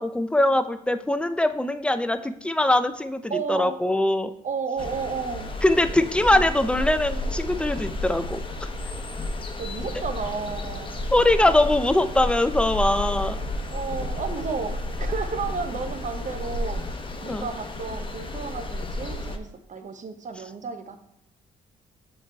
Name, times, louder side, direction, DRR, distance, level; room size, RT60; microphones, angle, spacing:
voice 1, 0.0-4.3 5.6-8.4 11.1-13.4 17.3-17.5, left 1 dB, 5° left, 10 dB, 0.5 m, -22 dB
voice 2, 3.3-3.8 4.4-5.5 6.3-6.5 9.6-11.0 13.7-16.8 17.2-21.0, right 5 dB, 45° right, 8 dB, 0.8 m, -32 dB
sound 1, 4.8-19.4, left 1 dB, 30° left, 0.8 m, -31 dB
6.3 x 3.3 x 4.5 m, 0.79 s
supercardioid pair, 65°, 17 cm